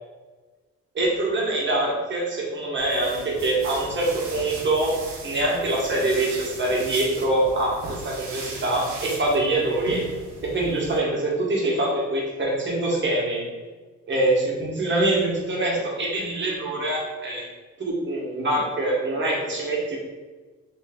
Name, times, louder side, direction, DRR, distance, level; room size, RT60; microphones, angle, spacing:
voice 1, 0.9-5.0 5.2-10.1 10.4-13.5 14.1-17.4 17.8-20.0, right 2 dB, 40° right, -3 dB, 1.3 m, -24 dB
sound 1, 2.8-11.0, right 3 dB, 70° right, 1.1 m, -38 dB
3.3 x 3.0 x 3.6 m, 1.3 s
cardioid pair, 90°, 30 cm